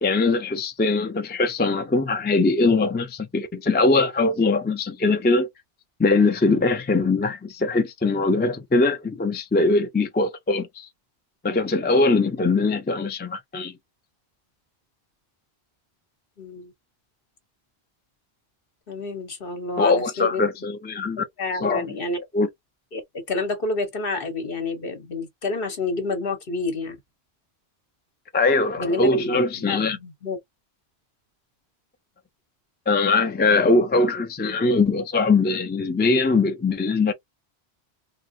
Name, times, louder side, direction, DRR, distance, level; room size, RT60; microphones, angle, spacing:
voice 1, 0.0-5.5 6.0-10.9 11.4-13.7 19.8-21.2 21.6-21.9 22.3-22.5 28.3-30.0 32.9-37.1, left 3 dB, 15° left, 0.3 m, -21 dB
voice 2, 16.4-16.7 18.9-20.4 21.4-22.2 22.9-27.0 28.8-30.4, left 3 dB, 60° left, 1.3 m, -29 dB
3.9 x 2.1 x 2.6 m
omnidirectional pair, 1.1 m